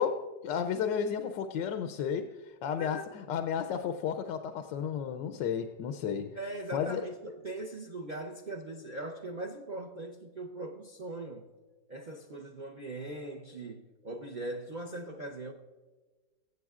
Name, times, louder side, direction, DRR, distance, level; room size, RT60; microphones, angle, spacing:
voice 1, 0.0-6.3 6.7-7.1, left 7 dB, 85° left, 1.3 m, -33 dB
voice 2, 2.8-3.2 6.3-11.5 11.9-15.5, right 2 dB, 85° right, 0.4 m, -40 dB
22.5 x 8.0 x 2.4 m
omnidirectional pair, 1.9 m